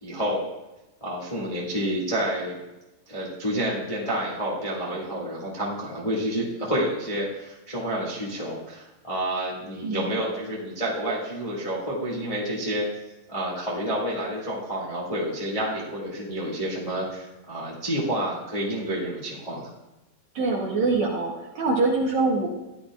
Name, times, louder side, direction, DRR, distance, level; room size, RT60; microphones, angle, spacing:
voice 1, 0.0-0.4 1.0-2.6 3.1-12.9 13.3-19.7, right 1 dB, 65° left, -5 dB, 0.3 m, -29 dB
voice 2, 9.8-10.2 20.3-22.5, right 3 dB, 65° right, -3 dB, 1.8 m, -24 dB
15.0 x 11.0 x 2.4 m, 1.0 s
omnidirectional pair, 4.6 m